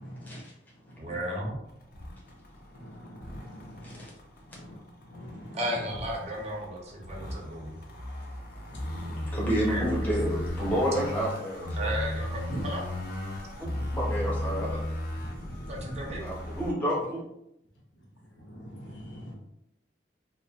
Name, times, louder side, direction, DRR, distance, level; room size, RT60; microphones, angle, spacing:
voice 1, 0.1-0.4 2.8-3.8 4.5-4.7 5.1-5.6 8.7-9.2 13.7-13.8 15.2-15.6 18.5-19.3, equal, 75° left, -3 dB, 0.9 m, -44 dB
voice 2, 1.0-1.6 5.5-7.7 9.7-10.0 11.8-12.9 15.7-16.3, equal, 35° right, -1 dB, 0.5 m, -34 dB
sound 1, 1.7-16.7, left 1 dB, 50° left, 0.4 m, -35 dB
voice 3, 9.3-11.9 13.6-14.7 16.2-17.2, equal, 10° left, -5 dB, 0.6 m, -30 dB
2.3 x 2.1 x 2.7 m, 0.82 s
head